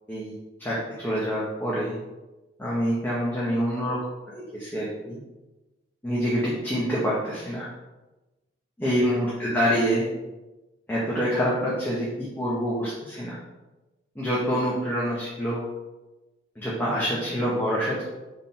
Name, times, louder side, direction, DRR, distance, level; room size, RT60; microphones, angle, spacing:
voice 1, 0.6-2.0 2.6-4.0 4.3-5.2 6.0-7.7 8.8-10.1 10.9-13.4 14.1-15.6 16.5-18.0, equal, 10° left, -7 dB, 1.1 m, -26 dB
4.8 x 3.9 x 5.7 m, 1.1 s
head